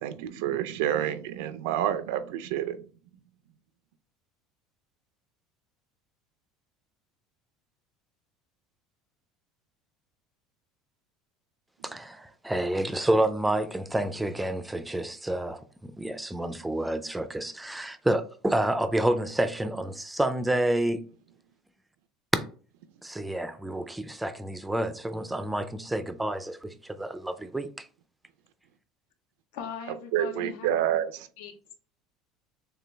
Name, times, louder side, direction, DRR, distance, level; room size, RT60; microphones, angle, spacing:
voice 1, 0.0-2.8 30.1-31.3, right 11 dB, 85° right, 0.5 m, -28 dB
voice 2, 11.8-21.0 22.3-22.4 23.0-27.9, right 1 dB, 5° right, 0.4 m, -29 dB
voice 3, 29.5-31.0 31.4-31.7, left 7 dB, 90° left, 1.0 m, -41 dB
6.8 x 2.3 x 3.3 m
cardioid pair, 160°, 0 cm